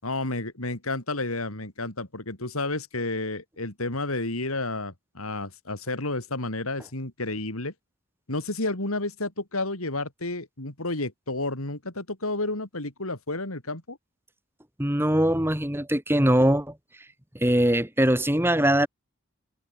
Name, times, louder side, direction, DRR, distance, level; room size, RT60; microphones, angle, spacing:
voice 1, 0.0-7.7 8.3-14.0, left 2 dB, 85° left, 4.5 m, -31 dB
voice 2, 14.8-16.7 17.3-18.9, right 1 dB, 10° right, 2.8 m, -22 dB
head